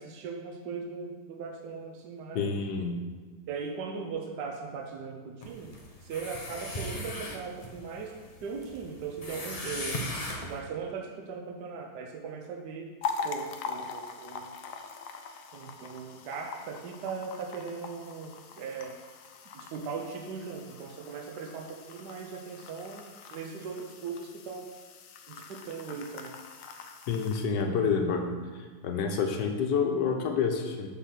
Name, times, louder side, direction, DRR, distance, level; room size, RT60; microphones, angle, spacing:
voice 1, 0.0-2.6 3.5-5.7 6.0-8.1 8.4-10.0 10.4-12.9 13.2-14.6 15.5-19.0 19.5-24.7 25.3-26.4, right 5 dB, 75° right, 2 dB, 1.3 m, -39 dB
voice 2, 2.3-3.0 27.1-28.4 28.8-30.9, left 5 dB, 90° left, 4 dB, 1.4 m, -28 dB
sound 1, 5.4-10.6, left 1 dB, 35° left, 0.6 m, -39 dB
sound 2, 13.0-27.4, left 5 dB, 65° left, 0.8 m, -42 dB
7.2 x 4.0 x 5.8 m, 1.4 s
omnidirectional pair, 1.8 m